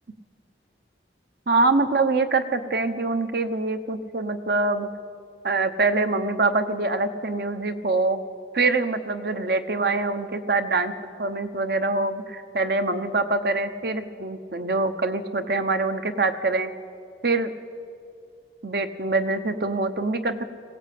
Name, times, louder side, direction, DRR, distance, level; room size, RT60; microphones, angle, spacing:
voice 1, 1.5-4.9 5.4-8.2 8.5-16.7 17.2-17.5 18.6-20.4, right 3 dB, 60° right, 9 dB, 1.0 m, -24 dB
20.5 x 16.5 x 8.5 m, 2.5 s
head